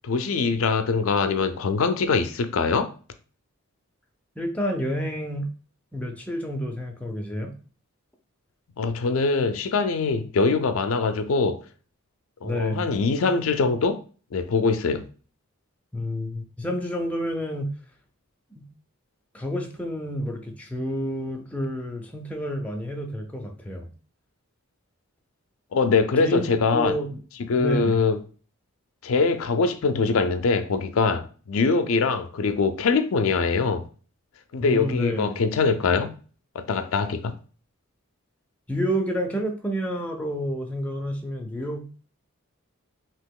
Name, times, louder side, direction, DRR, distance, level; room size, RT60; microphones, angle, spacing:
voice 1, 0.0-2.9 8.8-11.6 12.4-14.0 14.3-15.1 25.7-27.0 27.5-28.2 29.0-33.9 34.5-36.1 36.5-37.3, left 4 dB, 70° left, 0.4 m, -23 dB
voice 2, 4.4-5.5 5.9-7.5 12.4-12.9 15.9-17.7 19.3-23.9 26.2-27.2 27.6-28.0 34.6-35.4 38.7-41.9, equal, 5° left, 0.5 m, -29 dB
2.9 x 2.8 x 3.6 m
head